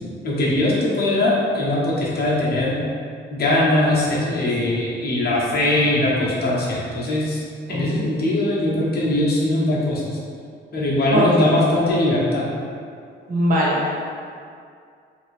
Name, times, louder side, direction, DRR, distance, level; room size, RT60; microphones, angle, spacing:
voice 1, 0.0-2.8 3.3-7.4 7.7-10.2 10.7-12.5, left 1 dB, 50° left, -5 dB, 0.9 m, -21 dB
voice 2, 7.7-8.2 11.1-11.6 13.3-13.8, equal, 45° right, -7 dB, 0.9 m, -21 dB
3.0 x 2.6 x 3.1 m, 2.3 s
cardioid pair, 90°, 20 cm